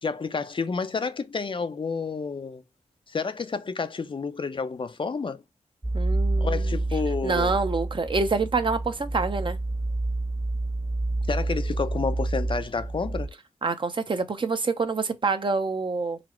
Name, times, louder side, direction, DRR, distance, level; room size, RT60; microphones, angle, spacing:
voice 1, 0.0-2.6 3.1-5.4 6.4-7.5 11.3-13.3, left 4 dB, 40° left, 0.5 m, -30 dB
sound 1, 5.8-13.3, right 2 dB, 10° right, 0.3 m, -28 dB
voice 2, 5.9-6.7 7.2-9.6 13.6-16.2, right 4 dB, 40° right, 0.7 m, -26 dB
4.1 x 2.0 x 4.3 m
cardioid pair, 70°, 13 cm